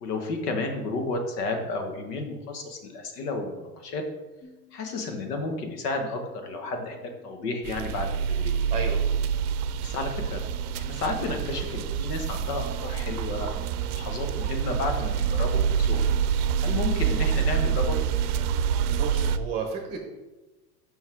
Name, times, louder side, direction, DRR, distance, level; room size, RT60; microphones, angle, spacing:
voice 1, 0.0-4.0 4.7-7.0 7.2-8.5 9.8-10.4 10.7-16.1 16.6-18.0, left 3 dB, 80° left, 4 dB, 1.5 m, -32 dB
sound 1, 4.4-16.6, left 13 dB, 50° left, 1.4 m, -57 dB
sound 2, 7.6-19.4, right 7 dB, 75° right, 0.6 m, -26 dB
voice 2, 18.9-20.0, right 5 dB, 15° right, 2 dB, 0.8 m, -32 dB
5.6 x 5.4 x 4.6 m, 1.1 s
supercardioid pair, 135°, 46 cm